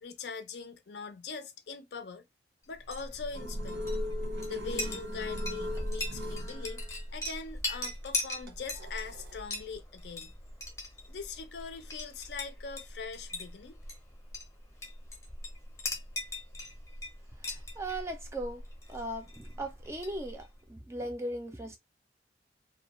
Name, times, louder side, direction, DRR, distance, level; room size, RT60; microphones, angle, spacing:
voice 1, 0.0-2.2 2.7-3.9 4.5-6.8 7.1-10.3 11.1-13.8, left 5 dB, 65° left, 0.5 m, -42 dB
Chink clink, 2.7-20.6, left 1 dB, 15° left, 0.7 m, -39 dB
sound 1, 3.3-9.4, left 2 dB, 85° right, 0.6 m, -41 dB
voice 2, 17.4-18.6 18.9-21.8, right 1 dB, 15° right, 0.4 m, -38 dB
2.3 x 2.2 x 2.9 m
head